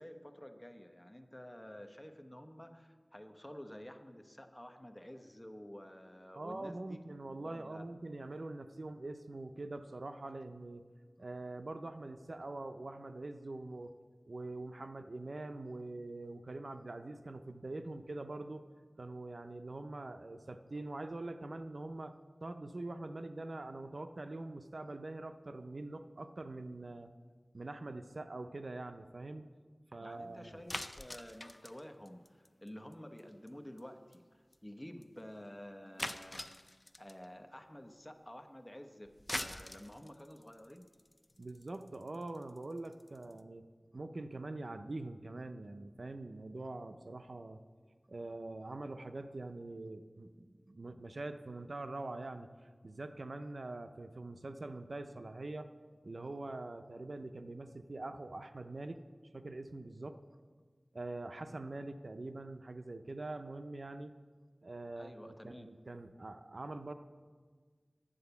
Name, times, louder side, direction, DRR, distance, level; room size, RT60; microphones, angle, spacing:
voice 1, 0.0-7.0 7.4-7.9 30.0-36.5 37.0-40.9 65.0-65.7, equal, 20° left, 6 dB, 0.9 m, -51 dB
voice 2, 6.3-10.8 11.2-13.9 14.3-18.6 19.0-22.1 22.4-27.1 27.5-29.5 29.9-30.6 41.4-43.7 43.9-47.6 48.1-55.7 56.0-59.0 59.3-60.2 60.9-64.1 64.6-66.9, right 2 dB, 70° right, 9 dB, 0.5 m, -44 dB
sound 1, 30.7-32.9 33.2-33.5 33.8-33.9 34.1-34.2 34.5-34.6 35.0-35.1 36.0-37.3 39.1-43.4, left 1 dB, 35° left, 0.5 m, -43 dB
9.9 x 8.0 x 6.9 m, 1.5 s
wide cardioid pair, 50°, 0 cm